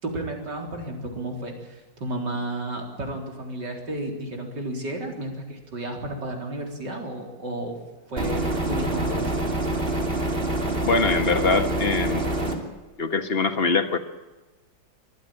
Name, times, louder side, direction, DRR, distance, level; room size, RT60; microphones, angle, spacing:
voice 1, 0.0-7.8 8.1-9.7, right 1 dB, 65° right, 2 dB, 4.6 m, -32 dB
sound 1, 8.2-12.6, right 1 dB, 30° right, 3.1 m, -26 dB
voice 2, 10.8-12.3 13.0-14.0, left 4 dB, 35° left, 9 dB, 1.7 m, -23 dB
24.0 x 15.0 x 9.2 m, 1.2 s
omnidirectional pair, 2.0 m